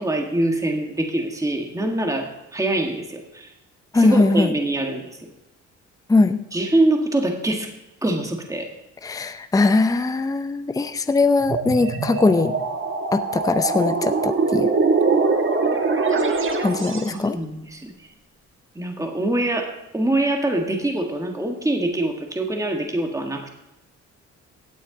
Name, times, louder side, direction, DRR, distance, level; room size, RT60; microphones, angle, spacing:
voice 1, 0.0-3.5 3.9-5.1 6.5-7.7 8.0-8.7 17.1-18.1 18.7-23.6, right 1 dB, 10° right, 2 dB, 1.8 m, -24 dB
voice 2, 3.9-4.5 6.1-6.4 9.0-12.5 13.1-14.7 16.6-17.4, left 3 dB, 10° left, 10 dB, 0.6 m, -20 dB
sound 1, 11.4-17.2, right 4 dB, 40° right, 1.5 m, -22 dB
16.5 x 8.8 x 3.9 m, 0.95 s
cardioid pair, 90°, 30 cm